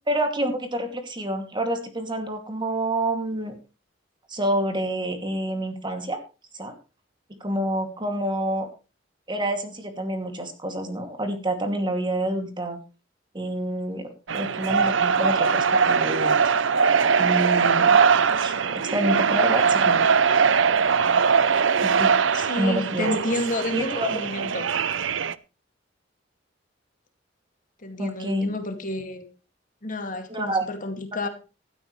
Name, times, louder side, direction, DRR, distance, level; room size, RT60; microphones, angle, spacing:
voice 1, 0.1-3.5 4.3-6.2 6.5-6.7 7.4-8.7 9.3-12.8 13.3-16.5 17.2-18.0 18.3-20.1 21.8-22.1 22.6-23.1 23.7-24.1 28.0-28.5 30.3-30.7, right 1 dB, 25° right, 2.5 m, -28 dB
sound 1, 14.3-25.3, right 6 dB, 75° right, 0.7 m, -21 dB
voice 2, 22.3-24.7 27.8-29.3 29.8-31.3, left 1 dB, 45° left, 2.3 m, -30 dB
16.0 x 12.5 x 3.2 m
head